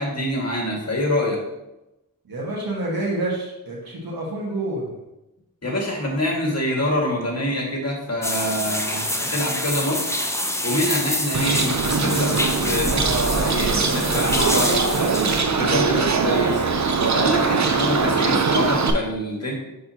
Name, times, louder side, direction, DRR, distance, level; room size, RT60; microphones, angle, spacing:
voice 1, 0.0-1.4 5.6-10.2 10.6-15.1 15.5-16.7 17.1-19.5, left 1 dB, 45° left, -1 dB, 1.8 m, -25 dB
voice 2, 2.3-5.0, right 2 dB, 75° right, -4 dB, 1.5 m, -28 dB
sound 1, 8.2-15.4, left 1 dB, 10° left, 0.7 m, -26 dB
Bird, 11.3-18.9, right 4 dB, 50° right, 0.7 m, -21 dB
6.5 x 5.3 x 2.8 m, 0.96 s
cardioid pair, 50°, 36 cm